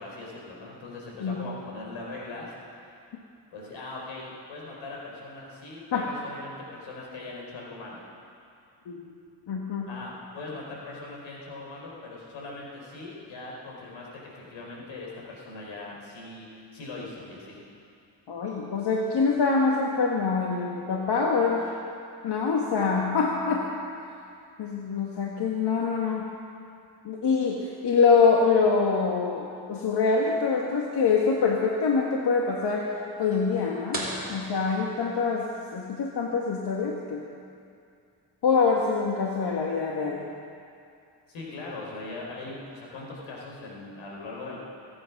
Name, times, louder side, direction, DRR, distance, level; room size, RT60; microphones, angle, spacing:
voice 1, 0.0-2.5 3.5-8.0 9.9-16.5 16.7-17.6 41.3-44.6, left 2 dB, 80° left, -3 dB, 4.5 m, -40 dB
voice 2, 9.5-9.9 18.3-21.7 22.2-23.7 24.6-26.3 27.1-32.9 33.2-34.0 34.3-37.2 38.4-40.2, left 5 dB, 60° left, -1 dB, 1.7 m, -25 dB
sound 1, 33.9-35.6, right 1 dB, 20° right, 3.5 m, -36 dB
23.5 x 8.8 x 6.0 m, 2.5 s
cardioid pair, 75°, 46 cm